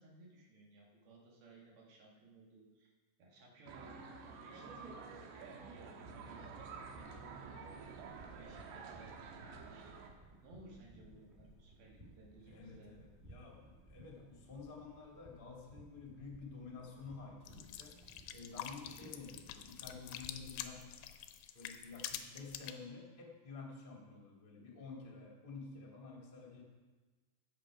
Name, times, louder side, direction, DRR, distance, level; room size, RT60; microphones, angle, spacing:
voice 1, 0.0-2.9 3.2-4.0 4.4-9.9 10.4-12.9, right 2 dB, 65° right, -2 dB, 3.4 m, -60 dB
sound 1, 3.7-10.1, right 5 dB, 80° right, 3.1 m, -50 dB
sound 2, 6.7-20.6, right 1 dB, 20° right, 2.1 m, -60 dB
voice 2, 12.5-21.1 21.5-26.6, left 4 dB, 25° left, -2 dB, 1.1 m, -51 dB
sound 3, 17.4-22.7, left 11 dB, 85° left, 2.9 m, -46 dB
15.5 x 6.9 x 4.9 m, 1.3 s
omnidirectional pair, 5.1 m